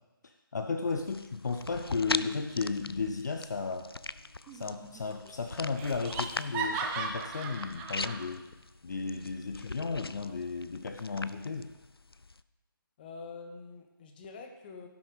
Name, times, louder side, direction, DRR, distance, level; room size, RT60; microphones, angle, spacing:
voice 1, 0.5-3.9 4.5-8.5 8.8-11.7, left 4 dB, 50° left, 6 dB, 0.7 m, -34 dB
sound 1, 0.9-12.4, left 3 dB, 85° left, 0.5 m, -41 dB
sound 2, 1.9-8.3, equal, 50° right, 2.4 m, -57 dB
Laughter, 4.5-5.0 5.3-5.4 5.8-8.2, right 5 dB, 10° right, 0.6 m, -37 dB
voice 2, 13.0-14.9, left 4 dB, 25° left, 5 dB, 1.0 m, -46 dB
16.5 x 6.6 x 4.0 m, 1.0 s
figure-of-eight pair, 145°, 12 cm